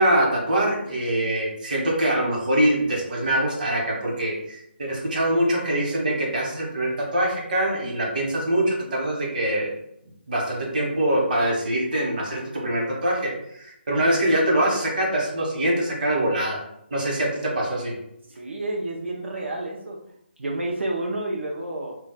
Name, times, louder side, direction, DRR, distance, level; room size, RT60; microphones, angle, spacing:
voice 1, 0.0-9.7 10.3-16.6 16.9-17.9, right 1 dB, 45° right, -2 dB, 1.0 m, -24 dB
voice 2, 18.3-20.0 20.4-22.0, right 2 dB, 85° right, 0 dB, 0.5 m, -30 dB
2.3 x 2.1 x 3.8 m, 0.77 s
hypercardioid pair, 170°, 6 cm